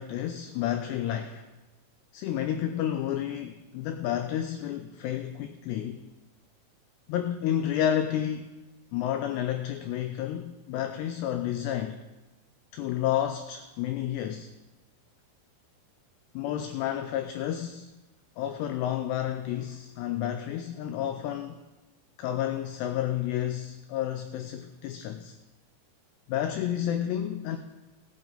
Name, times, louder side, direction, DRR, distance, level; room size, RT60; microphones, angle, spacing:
voice 1, 0.0-1.5 2.1-6.0 7.1-8.5 8.9-12.0 12.7-14.5 16.3-17.9 18.4-21.6 22.2-25.3 26.3-27.6, left 11 dB, 90° left, 7 dB, 2.4 m, -30 dB
17.0 x 9.1 x 3.9 m, 1.1 s
omnidirectional pair, 5.5 m